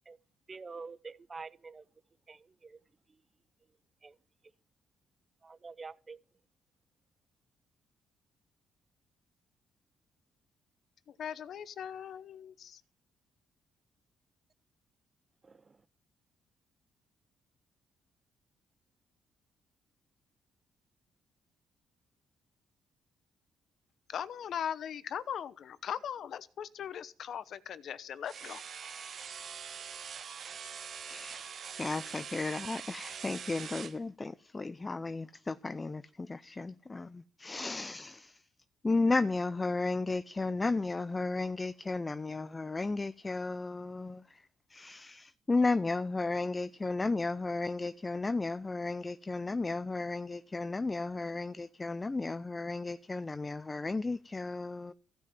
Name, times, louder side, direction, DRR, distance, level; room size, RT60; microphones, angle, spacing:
voice 1, 0.5-1.9 2.3-2.8 4.0-4.2 5.4-6.2 15.4-15.8, right 4 dB, 30° right, 0.6 m, -47 dB
voice 2, 11.1-12.8 24.1-28.6, left 8 dB, 65° left, 1.0 m, -39 dB
sound 1, 28.3-34.0, right 7 dB, 55° right, 1.2 m, -43 dB
voice 3, 31.0-38.4 38.8-44.4 44.7-54.9, left 3 dB, 25° left, 0.5 m, -34 dB
16.0 x 5.9 x 9.4 m
cardioid pair, 90°, 0 cm